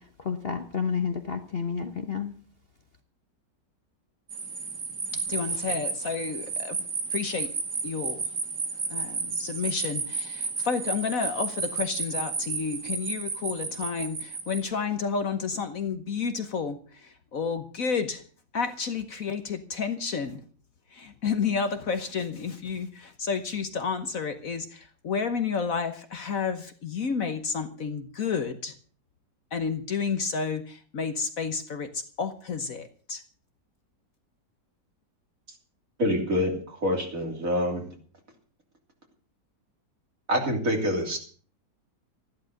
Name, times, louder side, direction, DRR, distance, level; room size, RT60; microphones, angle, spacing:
voice 1, 0.2-2.3, left 6 dB, 40° left, 6 dB, 1.1 m, -30 dB
sound 1, 4.3-14.6, right 5 dB, 70° right, 2.6 m, -32 dB
voice 2, 5.1-6.8 7.1-7.5 7.8-8.2 8.9-18.2 18.5-20.4 20.9-28.7 29.5-33.2, left 5 dB, 55° left, 9 dB, 1.4 m, -31 dB
voice 3, 36.0-37.9 40.3-41.2, equal, 50° right, 2 dB, 3.5 m, -26 dB
14.0 x 11.5 x 6.4 m, 0.43 s
omnidirectional pair, 1.9 m